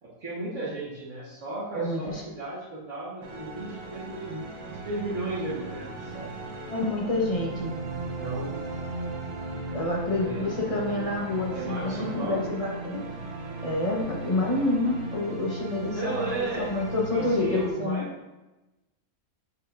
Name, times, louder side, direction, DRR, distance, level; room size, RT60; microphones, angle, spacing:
voice 1, 0.0-6.3 7.9-8.7 10.2-10.5 11.5-12.5 15.9-16.7 17.1-18.0, right 2 dB, 60° right, -9 dB, 1.7 m, -35 dB
voice 2, 1.7-2.2 6.7-7.7 9.7-13.1 13.6-18.1, left 2 dB, 25° left, -2 dB, 1.0 m, -28 dB
sound 1, 3.2-17.7, right 3 dB, 90° right, 1.3 m, -37 dB
7.7 x 5.5 x 2.5 m, 1.0 s
omnidirectional pair, 1.5 m